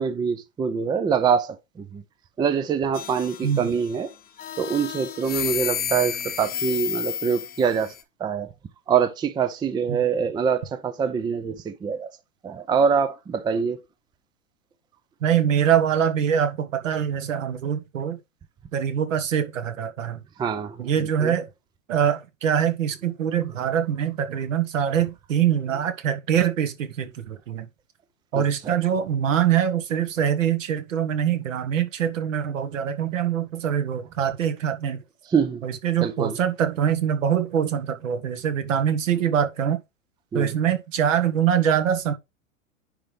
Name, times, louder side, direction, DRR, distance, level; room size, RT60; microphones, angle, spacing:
voice 1, 0.0-2.0 2.4-4.1 4.6-7.9 8.2-8.5 8.9-12.1 12.4-13.8 20.4-21.3 28.3-28.7 35.3-35.7 36.0-36.4 40.3-40.5, right 6 dB, 10° right, 0.5 m, -24 dB
sound 1, 2.9-3.9 4.4-8.0, left 9 dB, 20° left, 0.9 m, -31 dB
voice 2, 15.2-18.2 18.7-20.2 20.8-21.5 21.9-27.7 28.3-35.0 35.6-39.8 40.3-42.1, right 9 dB, 70° right, 1.4 m, -24 dB
9.9 x 3.8 x 3.4 m
figure-of-eight pair, 100°, 40 cm